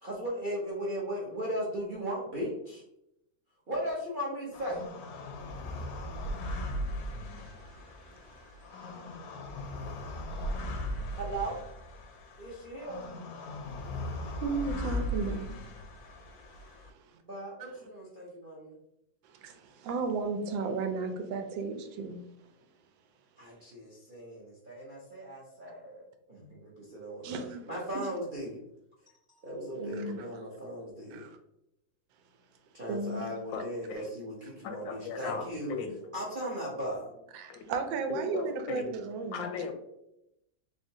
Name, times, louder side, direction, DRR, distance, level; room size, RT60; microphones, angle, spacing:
voice 1, 0.0-2.8 3.7-4.8 11.2-11.6 12.4-13.0 17.3-18.7 23.4-27.4 27.7-28.6 29.3-31.2 32.7-35.8 36.1-37.0, equal, 60° right, -5 dB, 0.5 m, -37 dB
sound 1, 4.5-16.9, left 1 dB, 70° left, 0.9 m, -38 dB
voice 2, 7.4-8.4 14.2-15.5 19.3-22.2 27.2-27.6 27.9-28.0 29.8-30.3 31.1-31.4 32.9-33.3 37.3-39.5, right 4 dB, 90° right, 6 dB, 1.3 m, -35 dB
voice 3, 33.5-34.0 34.6-35.9 37.5-37.7 38.1-38.9 39.3-39.7, left 6 dB, 85° left, 5 dB, 1.3 m, -37 dB
3.7 x 3.4 x 2.7 m, 0.82 s
omnidirectional pair, 2.0 m